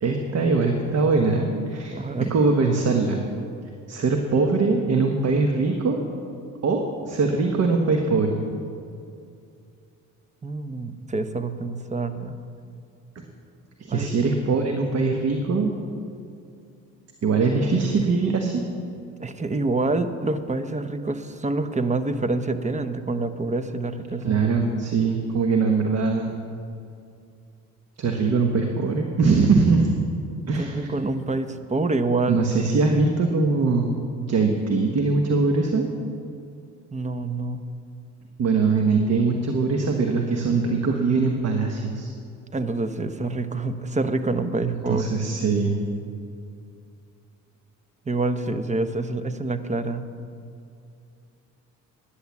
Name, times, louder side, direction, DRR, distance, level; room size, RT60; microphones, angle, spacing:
voice 1, 0.0-2.0 2.3-3.2 3.9-6.0 6.6-8.4 13.8-15.7 17.2-18.6 24.2-26.3 28.0-29.9 30.5-30.9 32.3-35.9 38.4-42.1 44.7-45.7, right 4 dB, 55° right, 3 dB, 1.3 m, -22 dB
voice 2, 1.9-2.3 10.4-12.4 13.9-14.1 19.2-24.4 30.6-32.4 36.9-37.6 42.5-45.0 48.1-50.1, right 3 dB, 25° right, 10 dB, 0.9 m, -27 dB
10.5 x 10.0 x 7.2 m, 2.5 s
cardioid pair, 80°, 31 cm